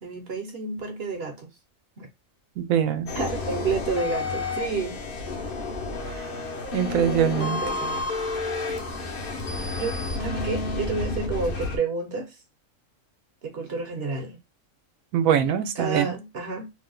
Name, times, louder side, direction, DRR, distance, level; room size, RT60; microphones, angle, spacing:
voice 1, 0.0-1.5 2.0-2.1 3.1-5.0 6.9-8.1 9.0-9.2 9.7-12.4 13.4-14.4 15.8-16.7, right 4 dB, 55° right, 0.9 m, -30 dB
voice 2, 2.6-3.1 6.7-7.6 15.1-16.1, right 9 dB, 85° right, 1.0 m, -23 dB
sound 1, 3.1-11.8, left 3 dB, 50° left, 0.7 m, -30 dB
2.7 x 2.2 x 3.7 m
omnidirectional pair, 1.4 m